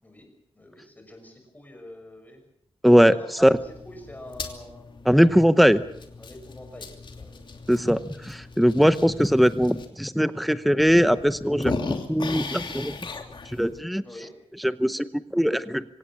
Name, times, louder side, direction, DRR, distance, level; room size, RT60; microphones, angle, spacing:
voice 1, 0.0-2.4 3.1-5.1 6.2-7.5 14.0-14.3, left 1 dB, 15° left, 5 dB, 6.2 m, -45 dB
voice 2, 2.8-3.5 5.1-5.8 7.7-13.1 13.5-14.0 14.6-15.8, equal, ahead, 13 dB, 0.8 m, -20 dB
sound 1, 3.4-9.9 10.4-10.5 10.8-13.8, left 4 dB, 50° left, 2.9 m, -38 dB
25.5 x 17.5 x 7.4 m, 0.71 s
wide cardioid pair, 160°, 10 cm